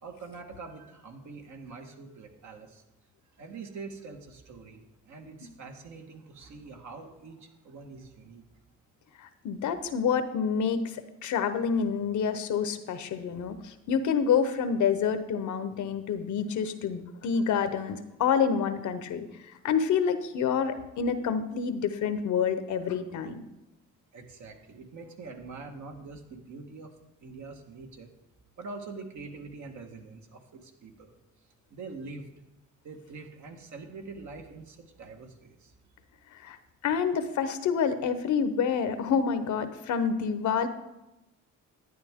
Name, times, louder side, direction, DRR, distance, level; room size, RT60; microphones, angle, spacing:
voice 1, 0.0-2.8 3.4-8.4 24.1-26.9 27.2-28.1 28.6-31.1 31.7-32.3 32.8-35.7, right 4 dB, 70° right, 3 dB, 1.6 m, -44 dB
voice 2, 9.2-19.2 19.6-23.4 36.3-36.6 36.8-40.7, left 6 dB, 75° left, 10 dB, 0.9 m, -28 dB
11.5 x 9.4 x 3.6 m, 0.95 s
cardioid pair, 90°, 30 cm